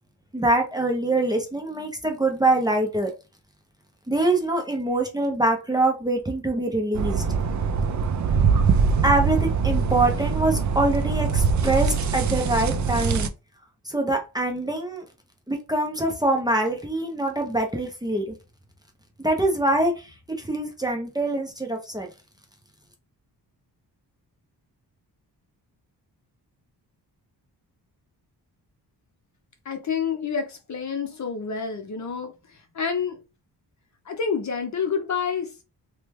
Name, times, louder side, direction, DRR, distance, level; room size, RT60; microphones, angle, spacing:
voice 1, 0.3-3.1 4.1-7.2 9.0-13.3 13.8-15.0 15.5-18.3 19.2-20.1 20.4-22.1, right 2 dB, 10° right, 0.6 m, -24 dB
sound 1, 7.0-13.3, right 5 dB, 50° right, 0.4 m, -23 dB
voice 2, 29.6-33.2 34.1-35.5, left 6 dB, 45° left, 0.7 m, -28 dB
3.1 x 2.2 x 3.1 m
wide cardioid pair, 110°, 39 cm